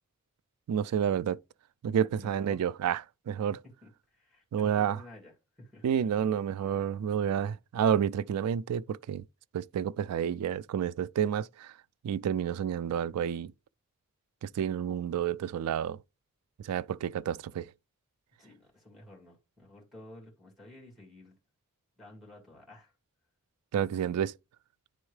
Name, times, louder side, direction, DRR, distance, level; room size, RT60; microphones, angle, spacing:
voice 1, 0.7-1.4 1.8-3.6 4.5-5.0 5.8-9.2 9.5-11.7 12.0-13.5 14.4-16.0 16.6-17.7 23.7-24.3, right 8 dB, 90° right, 0.3 m, -30 dB
voice 2, 1.9-2.6 3.5-6.1 18.4-21.4 22.0-22.9, left 1 dB, ahead, 2.0 m, -52 dB
9.5 x 3.6 x 3.2 m
head